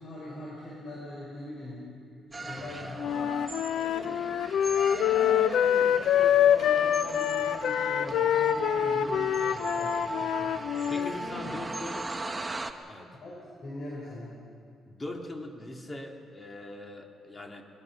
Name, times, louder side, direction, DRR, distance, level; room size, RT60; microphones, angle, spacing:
voice 1, 0.0-3.4 3.7-4.2 4.6-10.6 10.9-11.5 13.2-13.3 13.6-14.4, left 1 dB, 55° left, -4 dB, 4.8 m, -41 dB
sound 1, 2.3-12.7, right 2 dB, 20° right, 1.2 m, -38 dB
Wind instrument woodwind instrument, 3.0-11.1, left 10 dB, 75° left, 0.4 m, -25 dB
voice 2, 9.1-9.4 10.9-12.1 12.9-13.1 14.9-17.6, left 2 dB, 25° left, 3 dB, 2.5 m, -41 dB
22.0 x 21.0 x 6.0 m, 2.4 s
cardioid pair, 90°, 0 cm